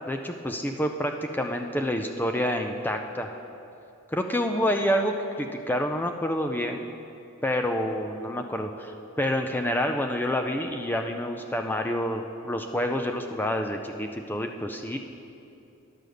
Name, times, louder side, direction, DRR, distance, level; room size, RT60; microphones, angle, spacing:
voice 1, 0.1-3.4 4.1-6.9 7.4-15.0, equal, 10° left, 4 dB, 0.4 m, -28 dB
11.0 x 6.6 x 6.4 m, 2.7 s
head